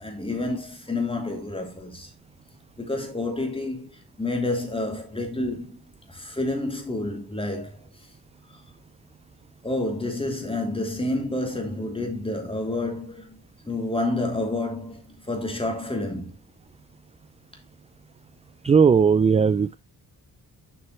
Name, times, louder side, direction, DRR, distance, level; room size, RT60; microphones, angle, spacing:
voice 1, 0.0-2.1 2.8-5.8 6.1-7.8 9.6-16.4, left 2 dB, 15° left, 2.9 m, -29 dB
voice 2, 18.6-19.8, right 6 dB, 20° right, 0.3 m, -17 dB
7.9 x 5.8 x 3.1 m
cardioid pair, 90°, 37 cm